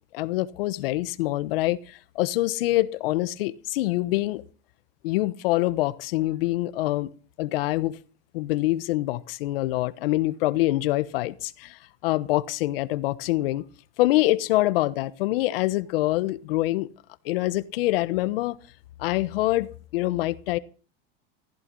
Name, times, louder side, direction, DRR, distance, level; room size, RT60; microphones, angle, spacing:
voice 1, 0.1-4.4 5.0-7.1 7.4-8.0 8.3-13.6 14.0-16.9 17.2-18.6 19.0-20.6, left 17 dB, 75° left, 1.3 m, -25 dB
15.0 x 14.0 x 5.4 m
supercardioid pair, 155°, 30 cm